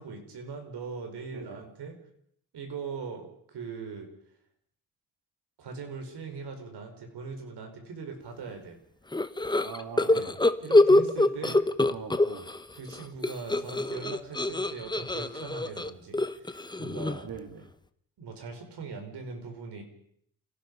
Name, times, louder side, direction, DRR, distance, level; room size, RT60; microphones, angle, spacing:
voice 1, 0.0-2.0 2.5-4.1 5.6-8.8 10.1-10.3 10.6-11.6 12.7-17.3 18.2-19.8, right 5 dB, 85° right, 5 dB, 5.0 m, -40 dB
sound 1, 9.1-12.6 12.9-17.4, left 2 dB, 10° left, 1.0 m, -24 dB
voice 2, 9.6-10.4 11.5-11.6 11.9-12.5 17.2-17.7, right 6 dB, 65° right, 7 dB, 2.8 m, -42 dB
29.0 x 17.5 x 5.5 m, 0.69 s
cardioid pair, 110°, 39 cm